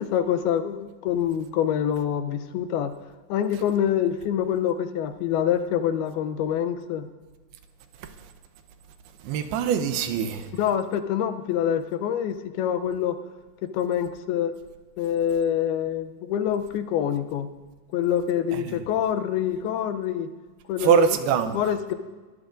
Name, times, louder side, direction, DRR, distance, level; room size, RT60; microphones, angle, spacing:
voice 1, 0.0-2.9 3.3-7.1 10.5-13.2 13.6-14.5 15.0-17.5 17.9-20.3 20.7-21.2 21.5-21.9, left 9 dB, 90° left, 9 dB, 2.7 m, -26 dB
voice 2, 9.2-10.5 18.5-18.8 20.8-21.6, right 7 dB, 85° right, 8 dB, 2.8 m, -23 dB
22.0 x 15.0 x 2.6 m, 1.3 s
omnidirectional pair, 4.4 m